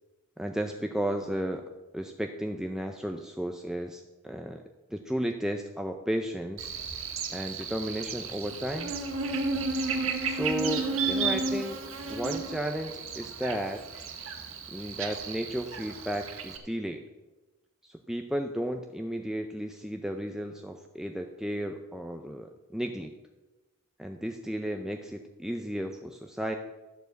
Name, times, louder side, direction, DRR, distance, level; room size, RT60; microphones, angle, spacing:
voice 1, 0.4-1.6 1.9-4.6 4.9-6.7 7.3-8.9 10.2-11.8 12.1-13.8 14.7-17.0 17.8-23.1 24.0-26.6, equal, ahead, 4 dB, 0.4 m, -33 dB
Buzz, 6.6-16.6, right 4 dB, 65° right, 1.6 m, -33 dB
13.0 x 4.8 x 7.9 m, 1.1 s
head